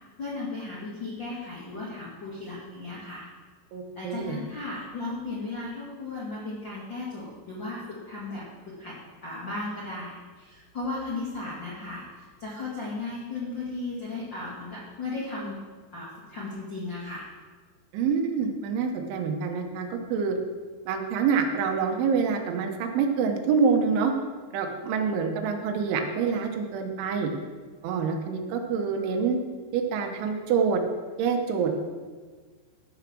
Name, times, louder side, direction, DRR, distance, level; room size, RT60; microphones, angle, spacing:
voice 1, 0.2-3.2 3.9-8.9 9.2-15.6 15.9-17.2, left 3 dB, 60° left, -6 dB, 1.1 m, -36 dB
voice 2, 3.7-4.4 17.9-20.4 20.9-24.1 24.5-27.3 27.8-29.4 29.7-30.8 31.2-31.8, right 6 dB, 80° right, 4 dB, 3.4 m, -26 dB
15.0 x 5.0 x 6.1 m, 1.5 s
omnidirectional pair, 5.4 m